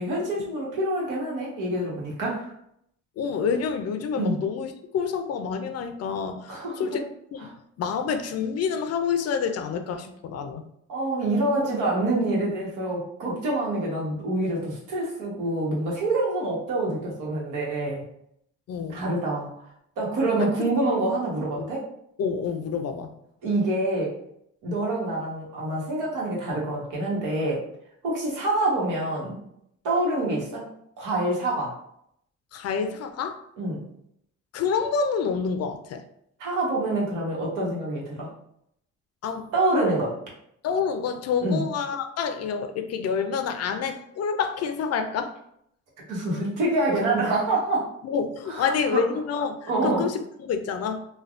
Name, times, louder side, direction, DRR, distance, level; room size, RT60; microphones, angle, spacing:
voice 1, 0.0-2.5 4.1-4.4 6.5-7.0 10.9-18.0 18.9-19.5 20.0-21.8 23.4-24.1 24.6-27.6 28.0-29.4 29.8-30.6 31.0-31.7 33.6-33.8 36.4-38.3 39.5-40.1 41.4-41.6 46.1-47.9 48.5-49.0 49.7-50.0, right 2 dB, 90° right, 1.1 m, -26 dB
voice 2, 3.2-7.5 7.8-10.6 18.7-19.0 20.4-20.7 22.2-23.1 32.5-33.5 34.5-36.0 39.2-39.5 40.6-45.4 48.0-51.1, left 6 dB, 55° left, 0.4 m, -28 dB
3.2 x 2.2 x 2.4 m
cardioid pair, 90°, 30 cm